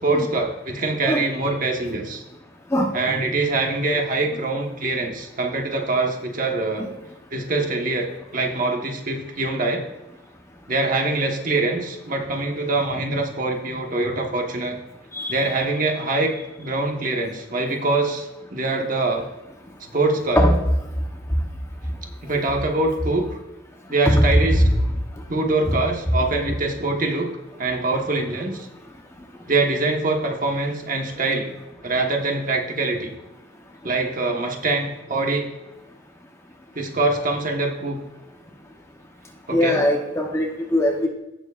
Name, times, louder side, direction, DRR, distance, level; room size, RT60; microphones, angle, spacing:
voice 1, 0.0-2.2 2.9-6.9 7.3-9.8 10.7-14.8 15.3-19.3 19.9-20.4 22.2-23.4 23.9-24.6 25.3-27.3 27.6-28.7 29.5-31.5 31.8-33.1 33.8-35.5 36.7-38.0 39.5-39.8, right 2 dB, 40° right, 2 dB, 1.2 m, -24 dB
voice 2, 15.1-15.5 20.4-20.6 24.0-24.3 24.6-24.7 25.7-25.8 39.5-41.1, equal, 15° left, 1 dB, 0.9 m, -20 dB
16.5 x 7.0 x 2.5 m, 1.0 s
head